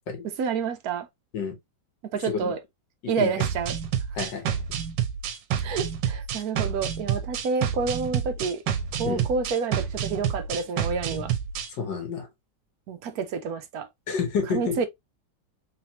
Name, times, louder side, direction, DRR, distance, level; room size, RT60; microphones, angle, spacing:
voice 1, 0.2-1.1 2.0-2.6 3.1-3.7 5.6-8.6 9.0-11.3 12.9-13.9 14.5-14.9, right 5 dB, 65° right, 1.1 m, -29 dB
sound 1, 3.4-11.7, right 8 dB, 80° right, 1.4 m, -28 dB
voice 2, 4.2-4.6 9.0-9.3 11.8-12.3 14.1-14.8, left 6 dB, 75° left, 2.1 m, -29 dB
4.0 x 3.1 x 2.9 m
omnidirectional pair, 2.0 m